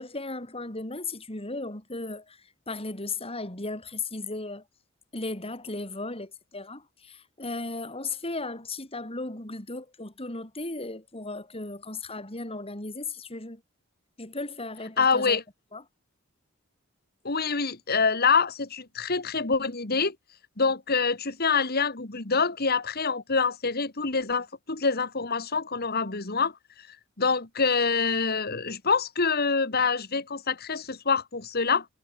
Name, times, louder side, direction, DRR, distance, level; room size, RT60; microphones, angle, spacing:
voice 1, 0.0-4.6 5.1-13.6 14.2-15.4 15.7-15.8, left 3 dB, 30° left, 4.1 m, -36 dB
voice 2, 15.0-15.4 17.2-20.2 20.6-26.5 27.2-31.9, left 5 dB, 50° left, 2.2 m, -26 dB
head